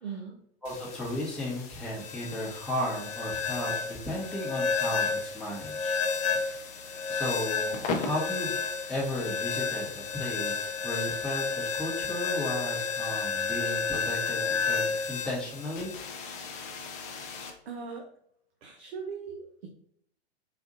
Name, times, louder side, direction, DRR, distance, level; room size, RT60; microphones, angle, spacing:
voice 1, 0.0-0.4 17.7-18.1 18.6-19.7, right 5 dB, 70° right, 3 dB, 0.6 m, -39 dB
sound 1, 0.6-17.5, left 5 dB, 20° left, 0.4 m, -32 dB
voice 2, 0.6-5.9 6.4-6.5 7.1-8.6 8.9-15.9, left 1 dB, ahead, -6 dB, 0.8 m, -35 dB
3.9 x 2.4 x 2.5 m, 0.67 s
figure-of-eight pair, 100°, 33 cm